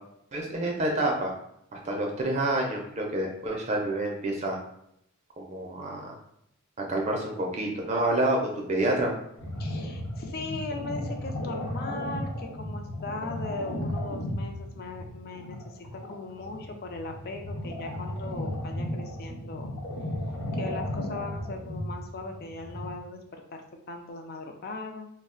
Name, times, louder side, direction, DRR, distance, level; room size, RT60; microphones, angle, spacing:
voice 1, 0.3-1.3 1.7-4.6 5.4-6.1 6.9-9.2, right 1 dB, 30° right, 0 dB, 0.4 m, -28 dB
sound 1, 9.4-22.9, left 1 dB, 65° left, 0.8 m, -35 dB
voice 2, 9.6-19.7 20.5-25.1, left 3 dB, 45° left, 4 dB, 0.4 m, -39 dB
2.3 x 2.0 x 3.7 m, 0.75 s
head